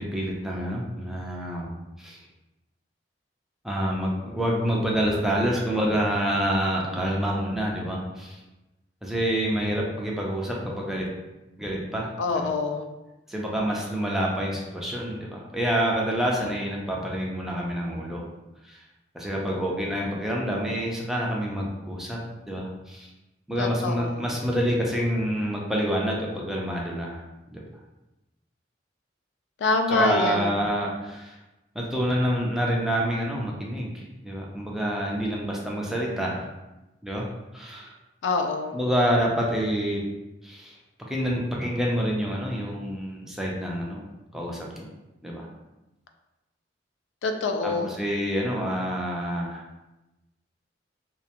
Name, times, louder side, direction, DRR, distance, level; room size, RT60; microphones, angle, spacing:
voice 1, 0.0-2.2 3.6-8.4 9.0-11.1 11.6-12.5 13.3-18.3 18.6-18.8 19.1-22.2 22.5-23.1 23.5-27.2 27.5-27.6 29.9-31.4 31.7-36.5 37.0-37.3 37.5-37.9 38.7-40.0 40.4-40.8 41.1-44.0 44.3-44.9 45.2-45.5 47.6-49.6, equal, ahead, -3 dB, 0.4 m, -27 dB
voice 2, 12.2-12.9 23.6-24.3 29.6-30.6 38.2-38.8 47.2-47.9, left 3 dB, 75° left, 5 dB, 0.3 m, -26 dB
2.4 x 2.1 x 2.8 m, 1.0 s
head